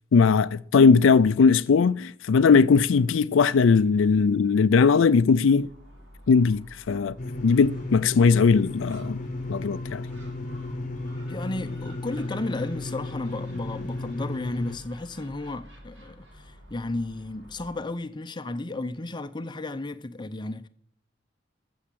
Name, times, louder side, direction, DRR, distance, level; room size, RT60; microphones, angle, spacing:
voice 1, 0.1-5.7 6.3-7.2 7.4-9.2 9.5-10.0, left 5 dB, 90° left, 0.4 m, -19 dB
Gull seagull, 5.5-17.9, equal, 65° right, 4.6 m, -50 dB
sound 1, 7.2-14.8, left 2 dB, 40° left, 0.9 m, -34 dB
voice 2, 11.3-20.7, left 2 dB, 25° left, 0.6 m, -33 dB
15.0 x 7.1 x 7.5 m
head